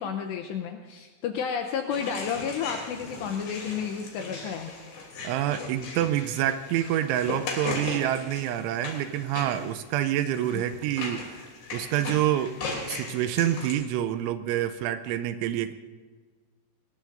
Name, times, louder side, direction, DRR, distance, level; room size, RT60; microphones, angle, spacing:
voice 1, 0.0-4.7 10.5-10.6, left 7 dB, 80° left, 4 dB, 2.5 m, -31 dB
sound 1, 1.9-13.7, left 3 dB, 55° left, 4.9 m, -38 dB
voice 2, 5.2-11.4 11.7-12.6 12.9-15.7, right 12 dB, 85° right, 10 dB, 2.9 m, -27 dB
23.5 x 20.5 x 2.6 m, 1.5 s
omnidirectional pair, 5.8 m